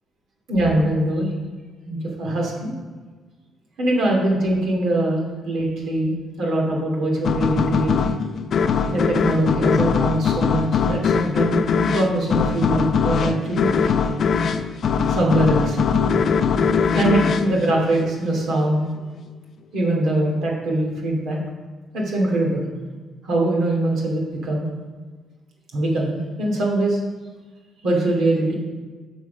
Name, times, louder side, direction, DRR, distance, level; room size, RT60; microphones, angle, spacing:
voice 1, 0.5-1.3 1.9-2.7 3.8-8.1 8.9-13.9 15.1-15.8 16.9-18.9 19.7-21.4 21.9-22.6 23.2-24.7 25.7-27.0 27.8-28.6, right 1 dB, 75° right, -1 dB, 2.5 m, -22 dB
sound 1, 7.2-18.5, left 6 dB, 60° left, 0.5 m, -21 dB
6.7 x 6.3 x 5.2 m, 1.4 s
cardioid pair, 80°, 0 cm